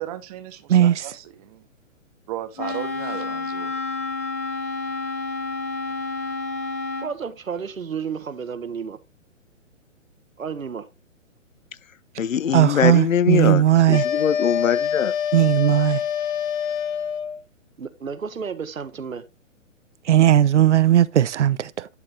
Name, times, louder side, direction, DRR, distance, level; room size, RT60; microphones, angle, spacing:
voice 1, 0.0-1.6 2.3-3.7, right 13 dB, 30° right, 0.9 m, -35 dB
voice 2, 0.7-1.1 12.5-14.0 15.3-16.0 20.0-21.9, right 11 dB, 60° right, 0.6 m, -17 dB
Wind instrument woodwind instrument, 2.6-7.1, left 3 dB, 15° left, 0.4 m, -29 dB
voice 3, 7.0-9.0 10.4-10.9 17.8-19.2, right 6 dB, 85° right, 1.1 m, -31 dB
voice 4, 12.2-13.6 13.9-15.1, left 8 dB, 80° left, 0.7 m, -22 dB
sound 1, 13.9-17.4, left 8 dB, 35° left, 1.4 m, -25 dB
11.0 x 4.2 x 3.7 m
figure-of-eight pair, 130°, 40 cm